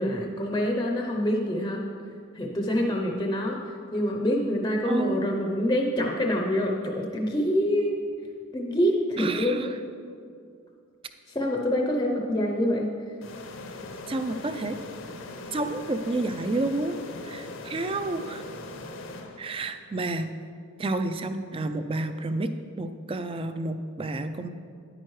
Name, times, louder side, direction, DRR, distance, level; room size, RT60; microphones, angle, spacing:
voice 1, 0.0-1.8 2.3-3.6 3.9-8.0 8.5-9.7 11.3-12.9, equal, 20° left, 0 dB, 0.6 m, -26 dB
voice 2, 4.8-5.3 9.2-9.8 14.1-14.8 15.5-17.0 17.2-18.4 19.4-20.3 20.8-24.5, right 2 dB, 25° right, 9 dB, 0.4 m, -30 dB
sound 1, 13.2-19.9, left 2 dB, 65° left, 0.7 m, -40 dB
9.8 x 8.9 x 3.2 m, 2.3 s
head